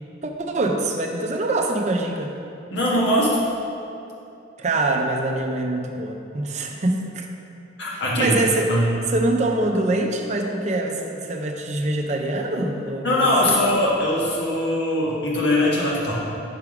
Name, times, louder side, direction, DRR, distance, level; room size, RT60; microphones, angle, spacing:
voice 1, 0.2-2.3 4.6-7.3 7.9-8.7 9.1-13.1 13.4-13.6, right 2 dB, 35° right, 3 dB, 0.4 m, -24 dB
voice 2, 2.7-3.4 7.8-8.4 8.7-8.9 13.0-16.1, left 1 dB, 65° left, -5 dB, 1.2 m, -21 dB
5.8 x 3.6 x 4.8 m, 2.6 s
head